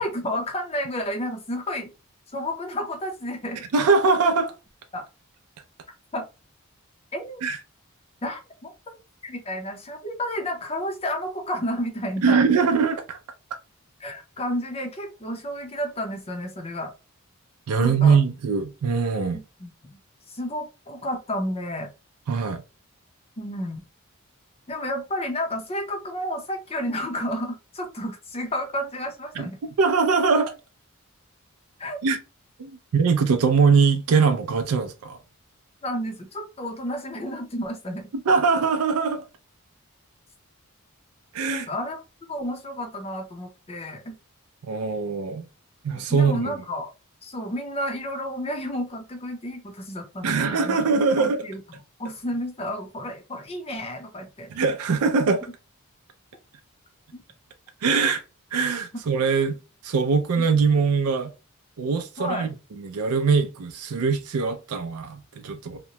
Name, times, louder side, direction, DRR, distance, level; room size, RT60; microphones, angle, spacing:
voice 1, 0.0-1.9 2.3-3.6 4.9-5.0 6.1-6.2 7.1-7.4 8.2-8.7 9.2-12.4 14.0-16.9 17.8-18.2 19.3-20.0 20.3-21.9 23.4-23.8 24.7-29.6 31.8-32.0 35.8-38.1 41.5-42.0 42.3-44.2 45.9-46.9 47.2-50.8 51.2-54.5 57.1-57.2 60.4-60.5 62.2-62.5, equal, 25° left, 0.6 m, -31 dB
voice 2, 3.7-4.5 7.4-7.6 12.2-13.2 17.7-19.4 22.3-22.6 29.4-29.5 29.8-30.5 32.0-32.2 32.6-35.2 38.3-39.2 41.3-41.7 44.6-45.4 45.8-46.4 50.2-51.4 54.5-55.4 57.8-58.2 58.5-59.6 59.8-61.3 61.8-62.5 62.8-65.8, right 5 dB, 75° right, 0.4 m, -22 dB
2.9 x 2.1 x 2.8 m
head